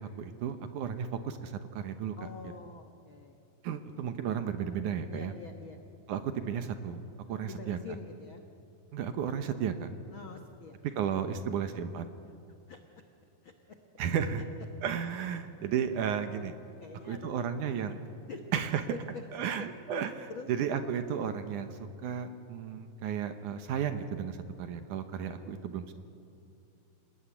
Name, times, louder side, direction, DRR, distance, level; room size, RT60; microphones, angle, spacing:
voice 1, 0.0-2.3 3.6-5.3 6.1-7.0 7.3-7.8 8.9-9.9 10.8-12.0 14.0-14.4 14.8-16.5 17.0-18.0 18.5-18.8 19.3-25.9, right 8 dB, 70° right, 9 dB, 2.2 m, -33 dB
voice 2, 2.2-3.4 5.1-5.8 7.4-8.4 10.1-10.8 12.7-12.8 13.4-13.5 15.3-15.4 16.8-17.9 18.3-18.4 19.4-19.5 20.3-20.5 25.4-25.7, left 4 dB, 70° left, 5 dB, 1.2 m, -46 dB
27.0 x 19.0 x 9.9 m, 2.7 s
omnidirectional pair, 4.3 m